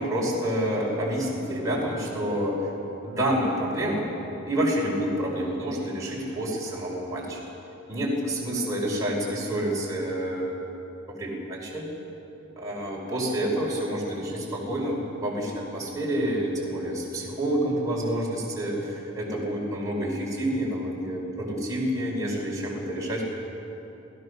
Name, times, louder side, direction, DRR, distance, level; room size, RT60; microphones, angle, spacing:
voice 1, 0.0-2.7 3.0-4.2 4.4-7.4 7.9-10.6 11.1-11.9 12.6-23.2, right 1 dB, 15° right, -4 dB, 4.9 m, -28 dB
28.0 x 16.5 x 6.6 m, 2.9 s
head